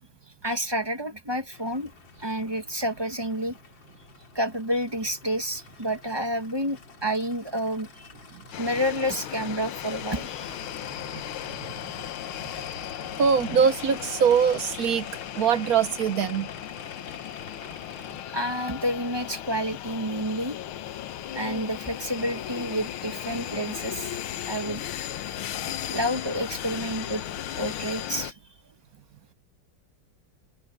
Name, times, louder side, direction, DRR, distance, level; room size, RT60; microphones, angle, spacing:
voice 1, 0.4-1.9 2.2-3.6 4.3-8.1 8.6-10.6 18.1-20.6 21.3-24.8 25.9-27.2 27.6-28.3, equal, 15° right, 1.1 m, -29 dB
Aircraft, 1.5-18.2, left 4 dB, 60° left, 3.2 m, -48 dB
sound 1, 8.5-28.3, left 11 dB, 75° left, 1.7 m, -36 dB
voice 2, 13.2-15.1 15.3-16.5, right 7 dB, 60° right, 0.9 m, -22 dB
omnidirectional pair, 2.4 m